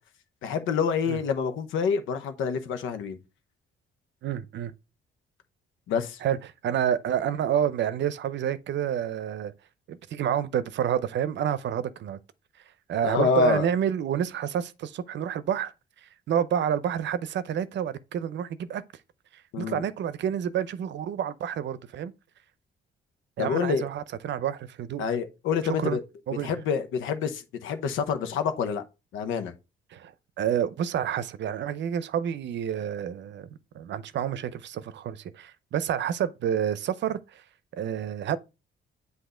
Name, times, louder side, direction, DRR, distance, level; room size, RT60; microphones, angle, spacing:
voice 1, 0.4-3.2 5.9-6.2 13.0-13.7 19.5-19.9 23.4-23.9 25.0-26.0 26.4-28.8 29.1-29.5, left 6 dB, 90° left, 0.9 m, -27 dB
voice 2, 4.2-4.7 6.2-6.4 6.6-9.5 9.9-12.2 12.9-15.7 16.0-18.8 19.3-22.1 23.4-25.0 25.6-26.0 26.3-26.6 29.9-30.1 30.4-33.5 33.7-37.4 37.7-38.4, right 9 dB, 65° right, 0.6 m, -29 dB
8.0 x 2.7 x 4.9 m
cardioid pair, 90°, 20 cm